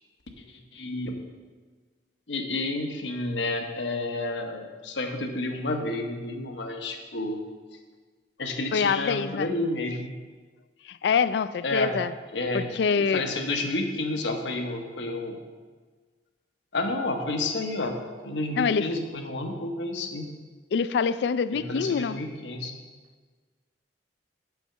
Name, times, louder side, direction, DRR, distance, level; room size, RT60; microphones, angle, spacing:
voice 1, 0.5-1.1 2.3-7.4 8.4-10.1 11.6-12.0 12.3-12.7 13.0-15.4 16.7-17.9 18.2-20.3 21.5-22.7, left 2 dB, 85° left, 4 dB, 1.1 m, -30 dB
voice 2, 8.7-9.5 10.9-12.1 12.5-13.2 18.6-18.9 20.7-22.2, left 6 dB, 65° left, 16 dB, 0.3 m, -25 dB
7.0 x 5.6 x 7.2 m, 1.4 s
head